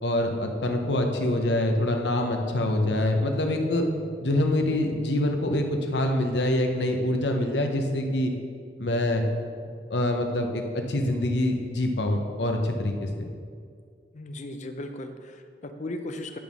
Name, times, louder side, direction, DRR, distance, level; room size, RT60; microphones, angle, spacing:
voice 1, 0.0-3.8 4.2-8.3 8.8-9.2 9.9-13.3, left 1 dB, 75° left, 4 dB, 0.9 m, -25 dB
voice 2, 14.1-16.4, left 1 dB, 45° left, 7 dB, 0.6 m, -37 dB
10.5 x 3.6 x 6.1 m, 2.2 s
head